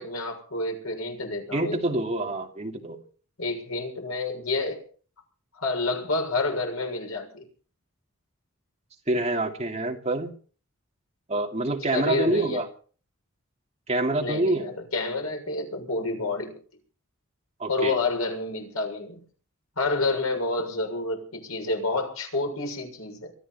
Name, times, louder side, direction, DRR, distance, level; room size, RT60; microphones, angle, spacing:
voice 1, 0.0-1.8 3.4-4.8 5.6-7.5 11.9-12.6 14.2-16.5 17.7-19.2 19.8-23.3, left 3 dB, 85° left, 3 dB, 7.0 m, -29 dB
voice 2, 1.5-3.0 9.1-10.3 11.3-12.7 13.9-14.7 17.6-18.0, right 2 dB, 30° right, 2 dB, 2.6 m, -26 dB
23.5 x 14.0 x 4.3 m, 0.42 s
head